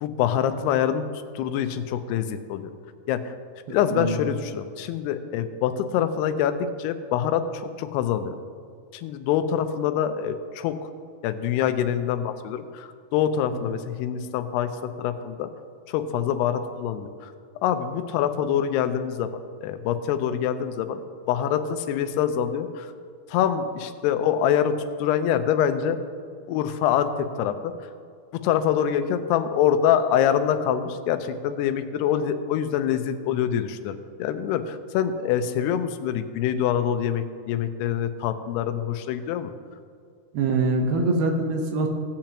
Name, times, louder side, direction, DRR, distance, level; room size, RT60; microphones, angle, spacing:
voice 1, 0.0-1.1 1.4-2.7 3.1-3.3 3.7-8.4 8.9-10.9 11.2-15.5 15.9-22.9 23.3-26.0 26.5-27.7 28.3-39.5, left 9 dB, 85° left, 9 dB, 2.7 m, -25 dB
voice 2, 3.7-4.2 40.3-41.9, right 2 dB, 75° right, 3 dB, 2.6 m, -24 dB
17.0 x 8.9 x 2.9 m, 2.3 s
omnidirectional pair, 4.7 m